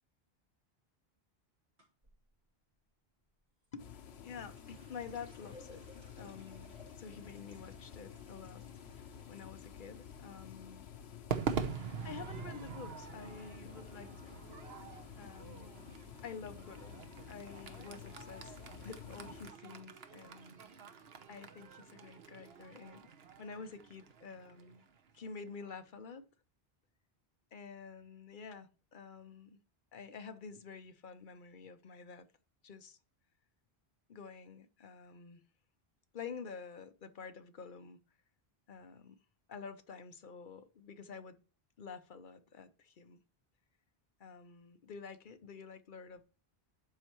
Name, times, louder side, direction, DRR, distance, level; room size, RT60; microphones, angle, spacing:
sound 1, 1.8-2.2 3.6-11.6 11.9-12.5 12.8-13.1 13.8-13.9 14.2-14.3, left 1 dB, 90° right, 4.3 m, -62 dB
sound 2, 3.8-19.5, left 8 dB, 80° left, 1.0 m, -51 dB
voice 1, 4.2-8.6 8.9-10.9 11.7-14.4 15.2-15.9 16.2-17.0 17.3-20.6 21.3-23.1 23.4-24.9 25.1-26.3 27.5-29.6 29.9-32.3 32.6-33.0 34.1-35.4 36.1-38.0 38.7-39.2 39.5-41.4 41.8-43.2 44.2-46.2, left 5 dB, 55° left, 0.9 m, -49 dB
Crowd / Fireworks, 11.3-25.7, right 6 dB, 75° right, 1.1 m, -44 dB
12.0 x 4.5 x 3.0 m
omnidirectional pair, 1.1 m